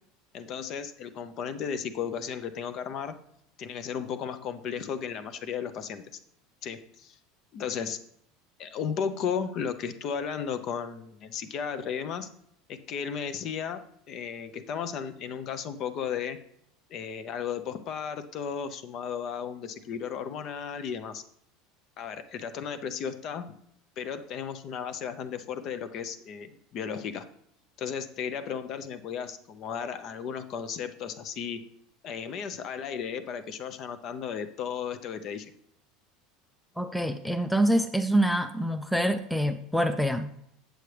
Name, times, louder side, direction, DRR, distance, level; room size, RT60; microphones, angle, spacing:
voice 1, 0.3-3.2 3.6-6.0 6.6-7.2 7.5-8.0 8.6-12.3 12.7-16.4 16.9-21.2 22.0-23.5 24.0-27.2 27.8-31.6 32.0-35.5, left 7 dB, 40° left, 11 dB, 0.7 m, -34 dB
voice 2, 36.8-40.3, right 1 dB, ahead, 8 dB, 0.3 m, -26 dB
8.2 x 7.7 x 3.3 m, 0.73 s
cardioid pair, 160°, 0 cm